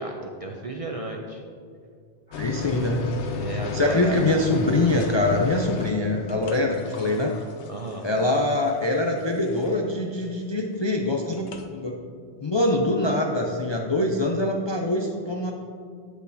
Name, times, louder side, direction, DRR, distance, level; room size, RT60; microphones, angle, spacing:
voice 1, 0.0-1.4 3.3-4.2 7.7-8.1, right 2 dB, 50° right, 1 dB, 0.4 m, -33 dB
sound 1, 2.3-10.0 11.3-11.7, left 6 dB, 80° left, 1.0 m, -34 dB
voice 2, 2.3-3.0 3.7-7.3 8.0-11.9 12.4-15.5, left 2 dB, 45° left, 0 dB, 0.3 m, -24 dB
8.4 x 7.9 x 2.7 m, 2.2 s
omnidirectional pair, 1.1 m